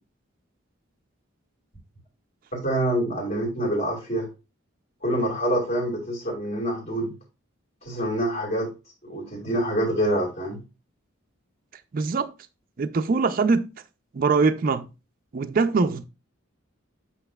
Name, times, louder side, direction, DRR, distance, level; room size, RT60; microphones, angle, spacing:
voice 1, 2.5-4.3 5.0-7.1 7.8-8.7 9.0-10.6, right 1 dB, 40° left, 1.9 m, -26 dB
voice 2, 11.9-12.3 12.8-13.7 14.1-14.9 15.3-16.0, right 4 dB, 45° right, 0.4 m, -22 dB
7.9 x 5.8 x 2.3 m
head